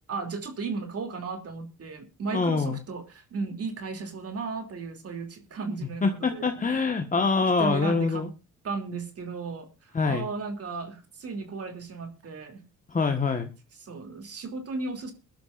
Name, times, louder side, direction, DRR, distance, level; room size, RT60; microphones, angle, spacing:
voice 1, 0.1-6.5 7.4-8.3 8.6-9.7 10.0-12.6 13.8-15.1, right 4 dB, 50° right, 6 dB, 3.0 m, -35 dB
voice 2, 2.3-2.8 6.0-8.3 9.9-10.3 12.9-13.5, left 4 dB, 25° left, 5 dB, 1.5 m, -25 dB
22.0 x 12.0 x 2.6 m, 0.29 s
cardioid pair, 90°, 30 cm